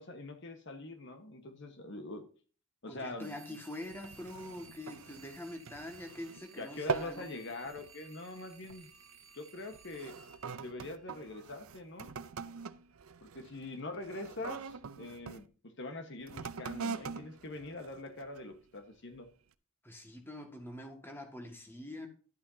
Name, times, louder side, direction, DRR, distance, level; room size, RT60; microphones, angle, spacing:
voice 1, 0.0-2.3 2.8-3.4 6.6-8.9 9.3-10.2 10.6-12.1 13.2-19.3, left 2 dB, 55° left, 1.3 m, -44 dB
voice 2, 2.9-7.2 19.8-22.1, left 1 dB, 10° left, 1.7 m, -45 dB
sound 1, 3.2-11.4, right 5 dB, 70° right, 1.2 m, -58 dB
sound 2, 3.8-6.4 6.7-7.3 7.6-8.0 8.6-8.9 9.6-15.4 16.2-18.6 19.1-19.2, right 5 dB, 85° right, 0.6 m, -43 dB
12.0 x 8.5 x 2.7 m
head